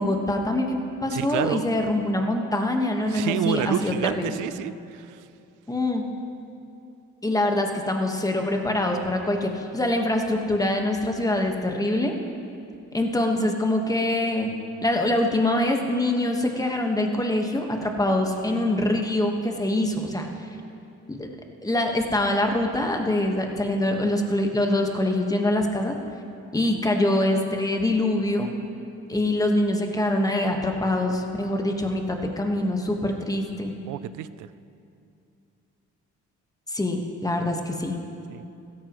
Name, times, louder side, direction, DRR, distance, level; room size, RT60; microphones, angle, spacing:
voice 1, 0.0-4.3 5.7-6.0 7.2-12.1 12.9-14.5 14.8-20.3 21.1-21.3 21.6-26.0 26.5-28.5 29.1-33.7 36.7-37.9, left 1 dB, 10° left, 3 dB, 1.4 m, -24 dB
voice 2, 1.1-1.6 3.1-5.2 33.9-34.5 38.3-38.4, right 12 dB, 80° right, 15 dB, 0.5 m, -29 dB
16.0 x 14.0 x 3.1 m, 2.6 s
cardioid pair, 90°, 30 cm